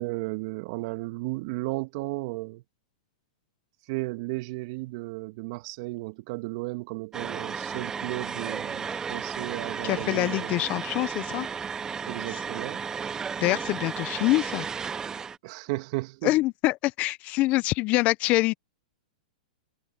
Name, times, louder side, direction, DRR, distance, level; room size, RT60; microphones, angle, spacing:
voice 1, 0.0-2.6 3.9-10.5 12.1-12.8 15.4-16.3, right 23 dB, 50° right, 2.2 m, -34 dB
sound 1, 7.1-15.4, right 6 dB, 15° right, 0.7 m, -34 dB
voice 2, 9.8-11.5 12.3-12.4 13.4-14.7 16.2-18.5, left 19 dB, 40° left, 0.7 m, -25 dB
hypercardioid pair, 120°, 4 cm